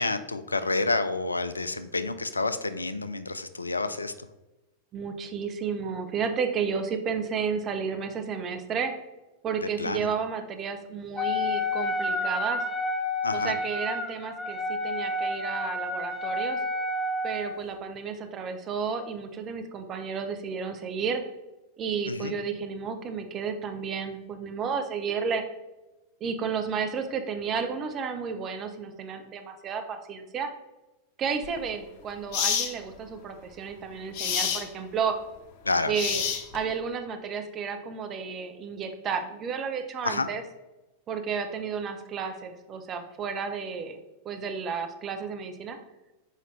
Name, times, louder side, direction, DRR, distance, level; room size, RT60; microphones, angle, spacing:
voice 1, 0.0-4.1 9.8-10.1 13.2-13.5 22.1-22.3 35.6-35.9 40.0-40.3, left 3 dB, 80° left, 11 dB, 0.4 m, -29 dB
voice 2, 4.9-8.9 9.4-12.6 13.3-16.6 17.2-21.2 21.8-25.4 26.2-30.5 31.2-35.2 35.9-36.2 36.5-40.4 41.1-44.0 44.2-45.8, right 6 dB, 30° right, 6 dB, 0.8 m, -32 dB
Wind instrument woodwind instrument, 11.2-17.6, left 2 dB, 10° left, 0.7 m, -30 dB
sound 1, 31.4-31.6 32.3-32.7 34.1-34.7 35.9-36.7, left 7 dB, 50° left, 0.7 m, -27 dB
6.5 x 5.0 x 3.2 m, 1.0 s
figure-of-eight pair, 90°, 0 cm